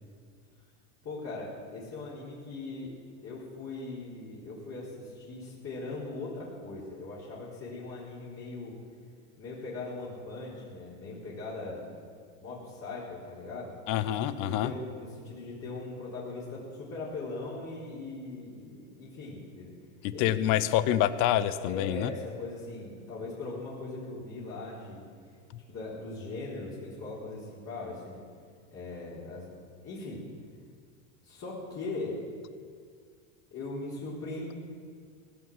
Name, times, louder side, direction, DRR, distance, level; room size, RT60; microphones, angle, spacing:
voice 1, 1.0-3.0 3.2-8.7 9.4-11.9 12.4-13.7 14.2-19.7 20.1-20.4 21.7-25.0 25.7-28.2 28.7-29.5 29.8-30.3 31.2-32.2 33.5-34.5, left 2 dB, 40° left, -8 dB, 4.4 m, -40 dB
voice 2, 13.9-14.7 20.0-22.1 25.5-25.6, left 12 dB, 55° left, 14 dB, 0.9 m, -27 dB
18.5 x 8.7 x 7.5 m, 2.1 s
supercardioid pair, 125°, 39 cm